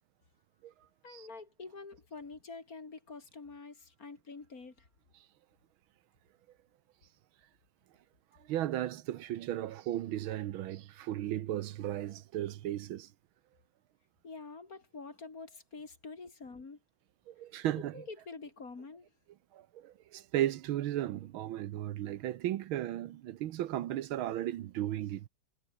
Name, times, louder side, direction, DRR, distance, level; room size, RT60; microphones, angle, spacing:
voice 1, 1.0-4.9 14.2-16.8 17.9-19.1, left 4 dB, 45° left, 3.1 m, -47 dB
voice 2, 8.4-13.1 17.3-18.0 19.5-25.3, right 13 dB, 80° right, 1.7 m, -35 dB
omnidirectional pair, 2.2 m